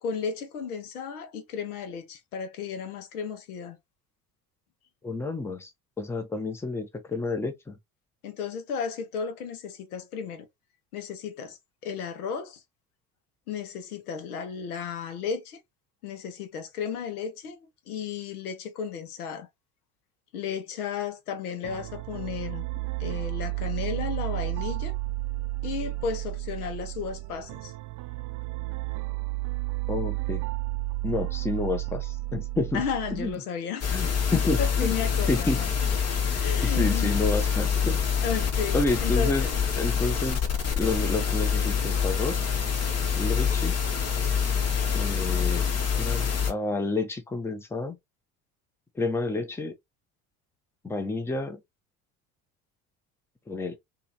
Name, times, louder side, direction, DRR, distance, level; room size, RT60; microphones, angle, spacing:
voice 1, 0.0-3.8 8.2-10.5 10.9-12.6 13.5-15.6 16.0-19.5 20.3-22.7 23.0-25.0 25.6-27.7 32.7-34.0 34.6-35.7 36.4-37.1 38.2-39.5, left 6 dB, 75° left, 0.8 m, -34 dB
voice 2, 5.0-5.7 6.0-7.8 29.9-30.4 31.0-32.8 33.1-33.3 33.9-35.0 35.3-35.6 36.6-38.0 38.7-39.5 39.8-40.4 40.8-42.4 43.2-43.7 44.9-45.7 46.0-47.9 49.0-49.7 50.8-51.6 53.5-53.8, left 2 dB, 5° left, 0.7 m, -29 dB
sound 1, 21.6-33.4, right 21 dB, 45° right, 0.5 m, -32 dB
sound 2, 33.8-46.5, left 7 dB, 35° left, 1.0 m, -26 dB
2.8 x 2.5 x 2.7 m
figure-of-eight pair, 65°, 45 cm